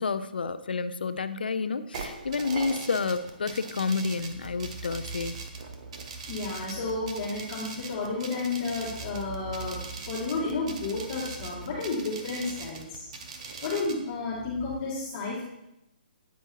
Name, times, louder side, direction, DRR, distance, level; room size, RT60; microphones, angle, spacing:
voice 1, 0.0-5.4, left 4 dB, 80° left, 13 dB, 0.4 m, -30 dB
sound 1, 1.9-13.9, right 4 dB, 45° right, 0.9 m, -41 dB
sound 2, 4.2-14.7, right 3 dB, 20° right, 2.0 m, -45 dB
voice 2, 6.3-13.1 13.4-15.4, left 3 dB, 30° left, -8 dB, 2.4 m, -32 dB
9.4 x 4.5 x 2.9 m, 0.84 s
hypercardioid pair, 145°, 5 cm